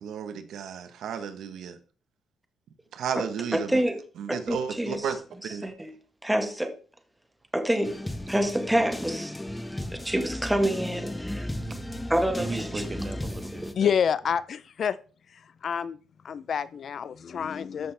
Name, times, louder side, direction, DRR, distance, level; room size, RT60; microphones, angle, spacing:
voice 1, 0.0-1.8 2.9-3.7 4.2-5.7, right 7 dB, 75° right, 1.1 m, -33 dB
voice 2, 3.5-4.0 4.3-5.1 5.4-6.8 7.5-9.3 10.0-11.5 12.1-12.9, right 1 dB, 5° right, 1.6 m, -27 dB
sound 1, 7.8-13.7, left 1 dB, 10° left, 1.1 m, -35 dB
voice 3, 11.6-12.1 12.4-13.9, right 3 dB, 30° right, 1.6 m, -37 dB
voice 4, 13.7-15.0 15.3-16.0 16.2-17.9, left 7 dB, 55° left, 0.5 m, -28 dB
13.5 x 5.9 x 3.4 m
cardioid pair, 90°, 0 cm